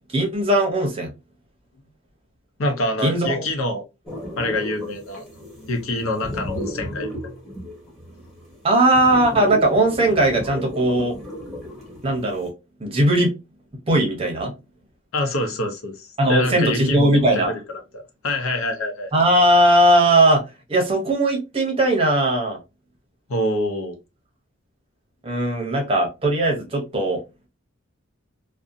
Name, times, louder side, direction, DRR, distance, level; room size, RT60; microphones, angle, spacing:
voice 1, 0.1-1.1 3.0-3.4 8.6-11.2 12.0-12.5 12.8-13.3 13.9-14.5 16.2-17.5 19.1-20.4 20.7-22.6 25.2-27.2, right 1 dB, 25° right, 0.7 m, -18 dB
voice 2, 2.6-3.8 4.4-5.2 5.7-7.1 15.1-19.1 23.3-24.0, left 1 dB, 80° left, 0.7 m, -26 dB
sound 1, 4.1-12.5, left 1 dB, ahead, 0.9 m, -35 dB
2.7 x 2.1 x 2.5 m
head